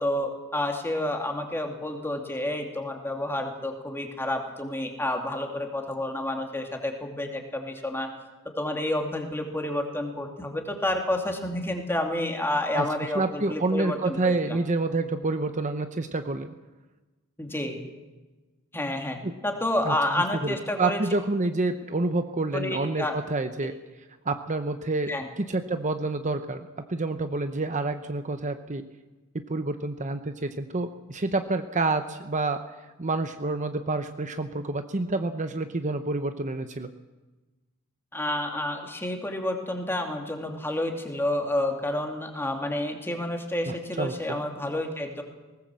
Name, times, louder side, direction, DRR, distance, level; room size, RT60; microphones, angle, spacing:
voice 1, 0.0-8.1 8.6-14.6 17.4-17.8 18.7-19.2 19.4-21.0 22.5-23.2 25.1-25.3 38.1-45.2, left 1 dB, 10° left, 3 dB, 2.6 m, -29 dB
voice 2, 13.1-16.5 19.2-19.3 19.8-19.9 20.4-23.7 24.3-25.1 25.4-28.8 29.3-32.6 33.0-36.9 44.0-44.1, right 3 dB, 35° right, 8 dB, 0.9 m, -28 dB
19.5 x 19.0 x 7.6 m, 1.2 s
head